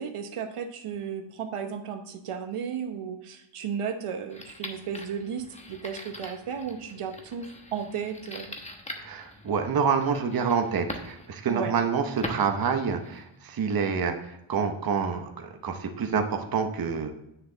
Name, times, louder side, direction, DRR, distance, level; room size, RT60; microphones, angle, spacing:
voice 1, 0.0-8.6 11.5-11.7, right 7 dB, 85° right, 5 dB, 1.0 m, -34 dB
sound 1, 4.3-13.4, left 1 dB, 15° left, 1.0 m, -42 dB
voice 2, 9.0-17.1, right 6 dB, 45° right, 5 dB, 0.9 m, -27 dB
9.4 x 6.7 x 3.8 m, 0.85 s
wide cardioid pair, 170°, 50 cm